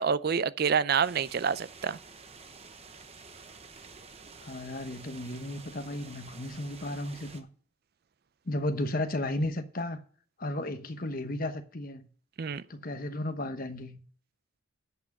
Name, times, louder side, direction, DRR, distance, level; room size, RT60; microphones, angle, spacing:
voice 1, 0.0-2.0 12.4-12.6, right 6 dB, 45° right, 0.4 m, -27 dB
sound 1, 1.0-7.4, right 4 dB, 30° right, 0.9 m, -50 dB
voice 2, 4.4-7.5 8.5-10.0 10.4-12.1 12.7-14.0, left 1 dB, 40° left, 1.0 m, -34 dB
11.0 x 6.1 x 5.3 m
head